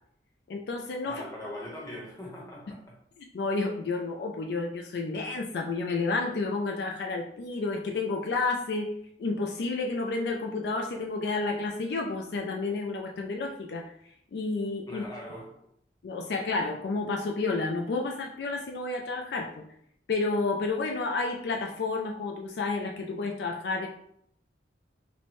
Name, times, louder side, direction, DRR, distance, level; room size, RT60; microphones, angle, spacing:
voice 1, 0.5-1.2 3.2-8.9 9.2-13.9 14.3-15.0 16.0-19.6 20.1-23.9, left 3 dB, 65° left, 2 dB, 0.4 m, -30 dB
voice 2, 1.0-2.9 14.9-15.6, left 1 dB, 15° left, -3 dB, 0.9 m, -41 dB
4.2 x 2.1 x 3.0 m, 0.71 s
head